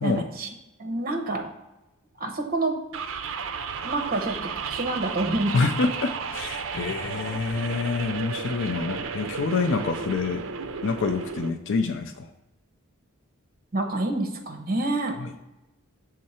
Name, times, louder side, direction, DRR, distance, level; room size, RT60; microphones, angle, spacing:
voice 1, 0.0-0.5 0.8-1.4 2.2-2.7 3.8-4.4 4.7-5.6 9.7-9.8 13.7-15.2, right 2 dB, 45° right, 4 dB, 1.0 m, -27 dB
sound 1, 2.9-11.5, right 5 dB, 65° right, 0.5 m, -33 dB
voice 2, 5.5-10.4 10.8-12.3 15.2-15.4, left 4 dB, 60° left, 7 dB, 0.4 m, -27 dB
6.4 x 3.8 x 4.2 m, 0.97 s
head